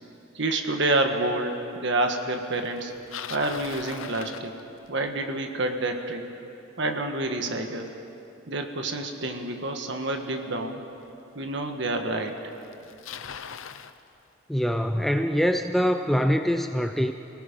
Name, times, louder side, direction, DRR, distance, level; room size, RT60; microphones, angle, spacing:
voice 1, 0.3-2.9 3.3-4.5 4.9-6.3 6.8-7.9 8.5-10.8 11.3-12.5, right 2 dB, 60° right, 4 dB, 1.6 m, -28 dB
Bicycle, 2.8-5.1 10.2-10.3 11.1-11.2 12.2-12.3 12.5-14.0, left 8 dB, 80° left, 0.7 m, -40 dB
voice 2, 14.5-17.1, equal, ahead, 6 dB, 0.5 m, -24 dB
28.5 x 18.5 x 5.3 m, 2.9 s
head